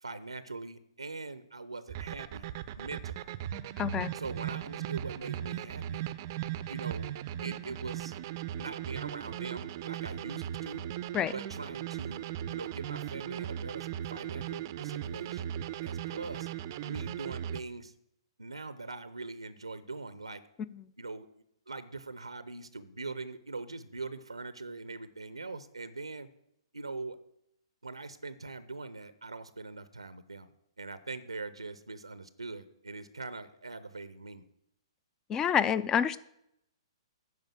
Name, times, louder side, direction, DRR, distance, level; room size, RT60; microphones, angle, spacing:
voice 1, 0.0-3.3 4.1-6.1 6.7-7.1 7.4-8.1 8.5-10.8 11.3-15.5 15.8-16.5 16.8-17.9 18.4-20.4 21.0-21.3 21.7-26.3 26.7-27.2 27.8-30.5 30.8-34.4, right 3 dB, 90° right, 14 dB, 0.6 m, -42 dB
sound 1, 1.9-17.6, right 11 dB, 40° right, 0.5 m, -38 dB
voice 2, 3.8-4.1 11.1-11.3 35.3-36.2, left 8 dB, 20° left, 17 dB, 0.4 m, -27 dB
9.4 x 5.2 x 7.6 m, 0.76 s
figure-of-eight pair, 125°, 3 cm